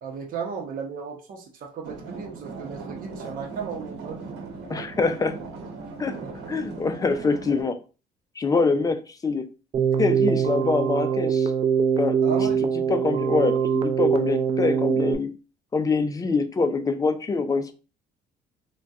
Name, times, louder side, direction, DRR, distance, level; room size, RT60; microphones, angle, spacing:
voice 1, 0.0-4.2 6.2-6.3 8.7-8.8 12.2-12.7, right 6 dB, 55° right, 0.8 m, -35 dB
sound 1, 1.8-7.6, right 4 dB, 90° right, 1.0 m, -38 dB
voice 2, 4.7-5.4 6.0-6.2 6.5-7.8 8.4-9.5 10.0-11.5 12.0-12.2 12.9-15.3 15.7-17.7, left 4 dB, 20° left, 0.4 m, -24 dB
Keyboard (musical), 9.7-15.1, right 7 dB, 35° right, 0.4 m, -23 dB
3.8 x 2.2 x 2.3 m
cardioid pair, 110°, 17 cm